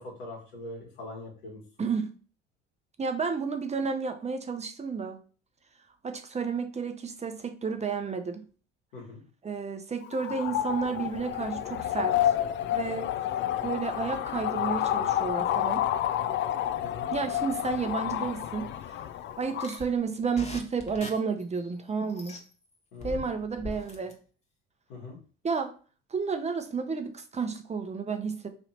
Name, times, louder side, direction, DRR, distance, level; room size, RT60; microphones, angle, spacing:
voice 1, 0.0-1.9 8.9-9.2 16.8-17.1 22.9-23.2 24.9-25.2, left 2 dB, 75° left, -3 dB, 1.5 m, -42 dB
voice 2, 1.8-2.1 3.0-5.2 6.0-8.4 9.4-12.3 12.7-13.1 13.6-15.8 17.1-18.7 19.4-22.4 23.0-24.2 25.4-25.7 26.1-28.5, right 5 dB, 20° right, 7 dB, 0.7 m, -31 dB
sound 1, 10.0-19.8, left 11 dB, 40° left, 0.4 m, -29 dB
sound 2, 19.6-22.4 23.0-24.1, left 2 dB, 20° left, 1.2 m, -41 dB
3.3 x 2.8 x 4.2 m, 0.39 s
hypercardioid pair, 65°, 30 cm